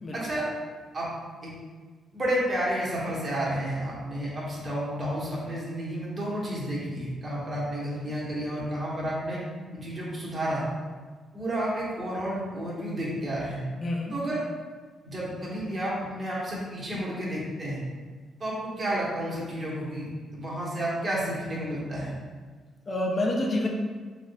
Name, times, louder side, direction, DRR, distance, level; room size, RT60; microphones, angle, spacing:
voice 1, 0.1-0.5 0.9-1.1 1.4-1.5 2.1-9.4 9.7-10.6 11.3-13.6 14.1-14.4 15.0-17.8 18.4-22.2, right 1 dB, 45° right, -6 dB, 1.2 m, -31 dB
voice 2, 13.8-14.1 22.9-23.7, left 1 dB, 40° left, -1 dB, 0.6 m, -27 dB
3.6 x 3.1 x 2.2 m, 1.5 s
supercardioid pair, 65°, 0 cm